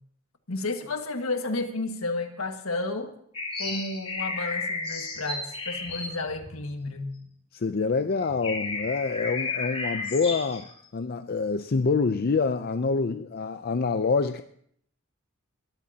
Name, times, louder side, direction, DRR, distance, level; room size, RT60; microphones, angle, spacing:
voice 1, 0.5-3.1 3.6-7.1, left 2 dB, 70° left, 5 dB, 1.7 m, -32 dB
sound 1, 3.3-7.3 7.8-7.9 8.2-10.7, left 3 dB, 25° left, 2.2 m, -33 dB
voice 2, 7.5-14.4, left 4 dB, 45° left, 9 dB, 0.5 m, -26 dB
21.5 x 14.0 x 2.9 m, 0.65 s
head